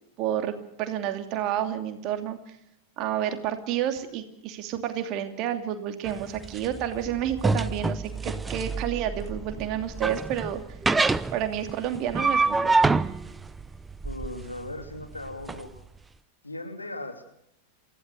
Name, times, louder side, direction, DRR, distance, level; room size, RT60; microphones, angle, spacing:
voice 1, 0.2-0.5 0.8-2.4 3.0-10.6 11.3-12.7, right 10 dB, 40° right, 7 dB, 2.7 m, -30 dB
sound 1, 6.0-15.6, right 3 dB, 10° right, 0.8 m, -27 dB
voice 2, 14.0-15.8 16.4-17.2, left 2 dB, 85° left, 5 dB, 3.1 m, -38 dB
28.0 x 15.5 x 6.4 m, 0.77 s
figure-of-eight pair, 90°, 0 cm